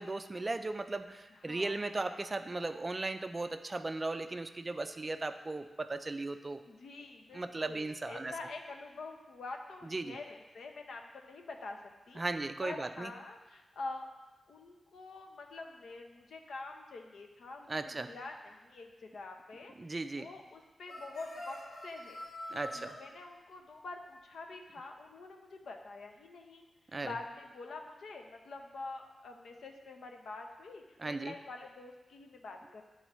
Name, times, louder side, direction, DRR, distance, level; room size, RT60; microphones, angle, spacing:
voice 1, 0.0-6.6 7.3-8.3 9.8-10.2 12.2-13.1 17.7-18.1 19.8-20.3 22.5-23.0 26.9-27.1 31.0-31.3, right 2 dB, 25° right, 8 dB, 0.4 m, -37 dB
voice 2, 1.3-2.0 6.6-11.8 12.1-12.2 12.6-14.1 14.5-19.7 20.2-21.6 21.8-22.2 22.7-26.6 27.0-32.8, left 3 dB, 80° left, 3 dB, 0.7 m, -46 dB
sound 1, 20.9-23.0, left 1 dB, 55° left, 1.6 m, -45 dB
11.0 x 3.9 x 3.1 m, 1.2 s
wide cardioid pair, 135°, 0 cm